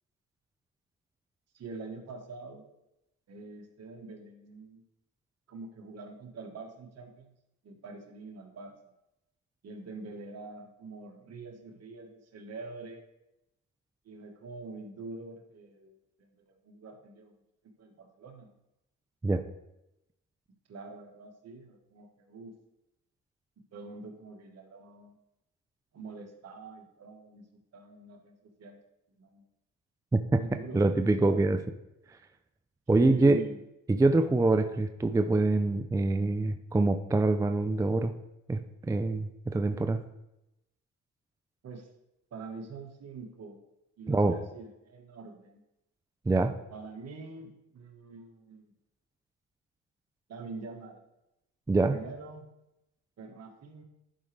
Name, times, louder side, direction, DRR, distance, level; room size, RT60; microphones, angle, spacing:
voice 1, 1.5-2.7 3.3-4.8 5.5-7.3 7.6-8.8 9.6-13.0 14.0-17.3 17.8-18.6 20.7-22.5 23.7-25.2 25.9-28.8 29.2-29.5 30.4-31.4 33.0-33.6 41.6-41.9 42.3-43.6 44.0-45.6 46.7-48.7 50.3-51.0 51.9-52.5 53.2-53.8, right 3 dB, 55° right, 3 dB, 1.5 m, -45 dB
voice 2, 30.1-30.4 30.7-31.6 32.9-33.4 33.9-38.1 38.5-40.0 44.1-44.4 46.3-46.6 51.7-52.0, right 2 dB, 10° right, 8 dB, 0.4 m, -25 dB
11.0 x 5.1 x 3.3 m, 0.88 s
cardioid pair, 90°, 30 cm